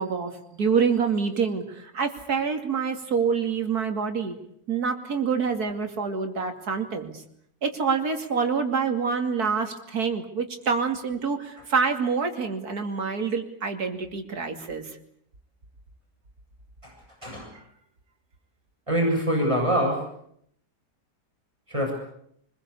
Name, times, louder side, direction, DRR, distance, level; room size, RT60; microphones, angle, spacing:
voice 1, 0.0-4.3 4.7-7.2 7.6-14.9 17.5-17.6, right 5 dB, 65° right, 6 dB, 3.1 m, -26 dB
voice 2, 18.9-20.0 21.7-22.0, equal, 20° right, 0 dB, 7.2 m, -24 dB
25.5 x 21.0 x 8.4 m, 0.70 s
omnidirectional pair, 1.7 m